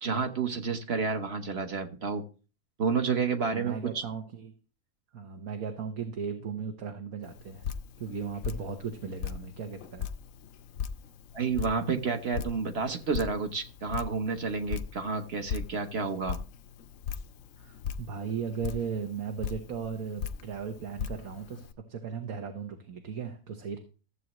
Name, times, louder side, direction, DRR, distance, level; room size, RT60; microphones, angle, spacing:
voice 1, 0.0-2.2 2.8-4.0 11.3-16.4, right 5 dB, 45° right, 6 dB, 1.2 m, -30 dB
voice 2, 3.5-4.5 5.1-7.7 8.0-10.1 17.6-23.8, right 6 dB, 70° right, 4 dB, 1.5 m, -36 dB
Drip, 7.2-21.7, left 7 dB, 65° left, 0.9 m, -39 dB
14.5 x 7.7 x 3.0 m, 0.35 s
omnidirectional pair, 1.6 m